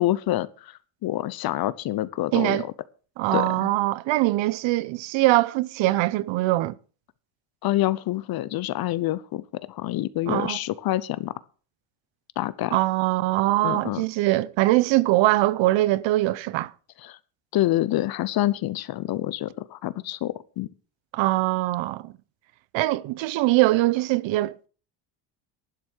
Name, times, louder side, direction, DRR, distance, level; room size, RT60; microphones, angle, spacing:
voice 1, 0.0-2.7 3.3-3.7 7.6-11.3 12.4-12.8 13.6-14.0 17.0-17.2 17.5-20.7, left 15 dB, 50° left, 0.8 m, -27 dB
voice 2, 2.3-2.7 3.2-6.7 10.3-10.6 12.7-16.7 21.1-22.1 22.7-24.7, right 18 dB, 70° right, 0.8 m, -22 dB
11.5 x 7.6 x 6.5 m
cardioid pair, 165°, 48 cm